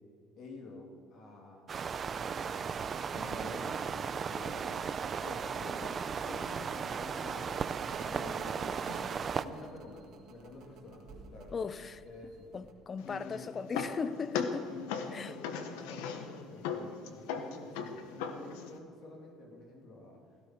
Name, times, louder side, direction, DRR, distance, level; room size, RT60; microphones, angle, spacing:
voice 1, 0.4-1.7 2.3-7.7 8.0-9.1 9.4-11.7 12.0-12.5 13.0-13.7 14.6-20.2, left 2 dB, 55° left, 3.0 m, -48 dB
sound 1, 1.7-9.5, right 6 dB, 35° right, 0.6 m, -36 dB
sound 2, 7.9-12.7, right 5 dB, 60° right, 2.3 m, -52 dB
voice 2, 11.5-12.0 12.5-14.7 15.1-15.3, left 5 dB, 30° left, 0.7 m, -37 dB
sound 3, 13.0-18.8, left 6 dB, 90° left, 1.4 m, -39 dB
17.0 x 16.5 x 4.6 m
cardioid pair, 110°, 0 cm